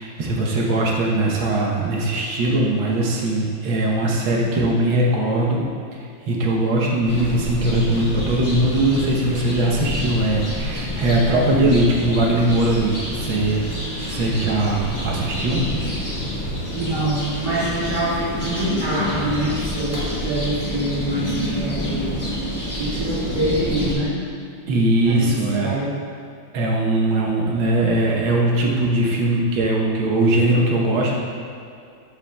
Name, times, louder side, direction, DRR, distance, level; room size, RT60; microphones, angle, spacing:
voice 1, 0.0-5.7 6.2-13.6 14.1-15.7 24.7-25.7 26.5-31.2, right 1 dB, 85° right, -2 dB, 1.8 m, -20 dB
sound 1, 7.0-23.9, left 1 dB, 10° left, 1.1 m, -28 dB
voice 2, 16.7-22.2 22.8-24.2 24.9-25.9, right 1 dB, 60° right, -8 dB, 2.6 m, -25 dB
12.0 x 5.7 x 2.3 m, 2.5 s
omnidirectional pair, 2.1 m